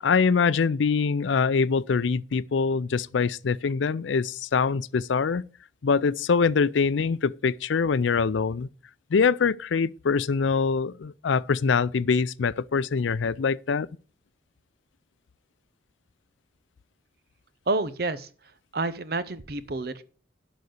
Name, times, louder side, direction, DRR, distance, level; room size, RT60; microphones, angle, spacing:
voice 1, 0.0-5.4 5.8-8.7 9.1-13.9, left 5 dB, 80° left, 0.5 m, -24 dB
voice 2, 17.7-18.3 18.7-20.0, right 2 dB, 55° right, 0.8 m, -29 dB
11.5 x 4.1 x 7.9 m
head